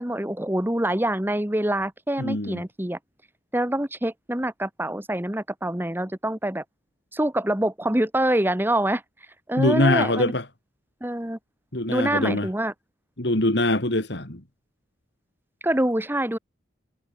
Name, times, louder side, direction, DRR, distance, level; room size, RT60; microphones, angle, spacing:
voice 1, 0.0-3.0 3.5-6.6 7.1-9.0 9.5-10.3 11.0-11.4 11.9-12.7 15.6-16.4, right 1 dB, 10° right, 1.3 m, -25 dB
voice 2, 2.2-2.6 9.6-10.4 11.7-12.5 13.2-14.4, left 1 dB, 60° left, 3.0 m, -23 dB
head